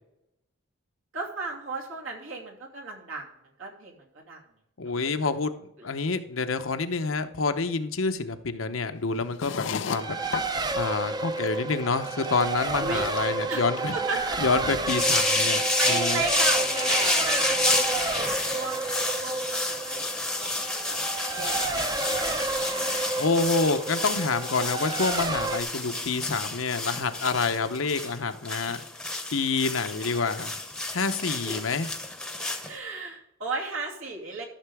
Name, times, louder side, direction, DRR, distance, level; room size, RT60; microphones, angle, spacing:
voice 1, 1.1-3.3 3.6-4.4 4.8-4.9 5.8-5.9 12.8-13.1 13.5-13.6 13.9-14.4 15.2-21.0 21.3-23.2 31.4-31.5 32.6-34.4, right 3 dB, 85° right, -2 dB, 2.6 m, -35 dB
voice 2, 4.8-5.5 5.8-10.2 10.7-13.9 14.4-15.6 15.9-16.2 21.4-21.5 23.2-28.8 29.3-30.5 30.9-31.9, left 4 dB, 90° left, 9 dB, 0.8 m, -27 dB
sound 1, 9.2-10.5 11.1-11.2 11.3-11.6 11.8-12.6 12.8-13.9 14.2-17.3 17.6-18.1 18.4-19.0 19.3-19.7, left 7 dB, 65° left, 0.4 m, -37 dB
Race car auto racing, 9.9-25.6, right 3 dB, 20° right, 0.5 m, -31 dB
sound 2, 14.9-32.7, left 2 dB, 5° left, 0.8 m, -29 dB
13.0 x 6.8 x 3.5 m, 0.80 s
head